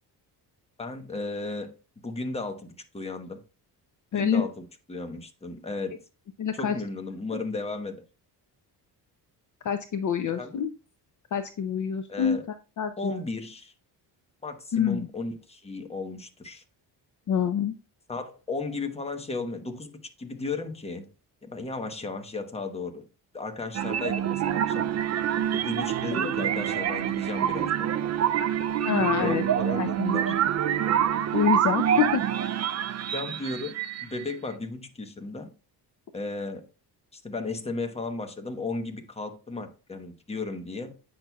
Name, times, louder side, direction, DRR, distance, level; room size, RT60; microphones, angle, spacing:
voice 1, 0.8-1.7 2.0-3.4 4.1-6.0 6.5-8.0 10.4-10.6 12.1-12.4 13.0-13.7 14.4-16.6 18.1-21.1 21.4-23.1 23.3-24.9 25.5-27.9 29.2-30.3 33.1-35.5 36.1-36.7 37.1-41.0, left 3 dB, 15° left, 1.0 m, -35 dB
voice 2, 4.1-4.5 6.4-6.8 7.3-7.4 9.6-10.7 11.3-12.4 12.8-13.1 14.7-15.1 17.3-17.7 26.1-26.3 28.8-29.4 29.8-30.2 31.3-32.2, left 8 dB, 45° left, 0.6 m, -26 dB
sound 1, 23.7-34.3, right 9 dB, 40° right, 0.4 m, -26 dB
8.6 x 6.2 x 2.3 m
cardioid pair, 130°, 42 cm